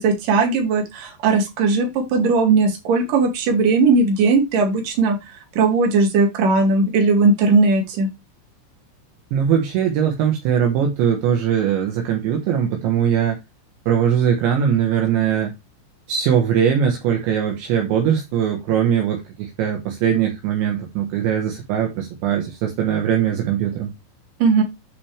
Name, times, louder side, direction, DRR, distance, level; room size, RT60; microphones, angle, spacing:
voice 1, 0.0-5.2 5.6-8.1 24.4-24.6, right 4 dB, 50° right, 3.5 m, -18 dB
voice 2, 9.3-13.4 13.9-15.5 16.1-23.9, right 8 dB, 75° right, 3.3 m, -20 dB
8.6 x 6.0 x 3.3 m
omnidirectional pair, 5.7 m